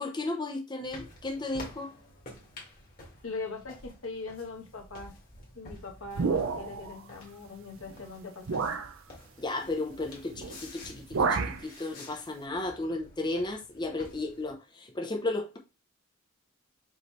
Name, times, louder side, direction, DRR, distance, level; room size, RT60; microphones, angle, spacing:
voice 1, 0.0-1.9 9.4-11.0 11.3-15.6, left 2 dB, 20° left, 0.7 m, -34 dB
sound 1, 0.8-14.5, left 1 dB, 45° left, 1.7 m, -50 dB
voice 2, 3.2-5.1 5.5-8.8, left 3 dB, 85° left, 1.2 m, -41 dB
sound 2, 6.1-6.9 7.8-7.9 8.5-8.9 10.3-10.6 10.8-11.6, right 5 dB, 85° right, 0.5 m, -29 dB
5.1 x 3.2 x 3.1 m
head